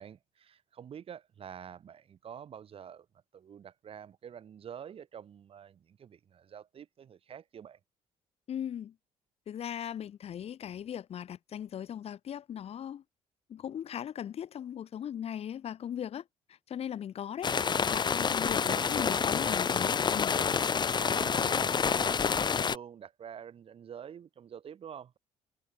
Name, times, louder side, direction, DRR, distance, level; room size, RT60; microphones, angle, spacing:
voice 1, 0.0-3.1 3.3-7.8 18.7-19.2 21.0-25.2, right 8 dB, 50° right, 5.9 m, -47 dB
voice 2, 8.5-8.9 9.5-13.0 13.5-16.2 16.7-17.6 17.9-20.4, left 9 dB, 55° left, 3.3 m, -38 dB
sound 1, 17.4-22.8, left 6 dB, 35° left, 1.9 m, -28 dB
cardioid pair, 115°, 13 cm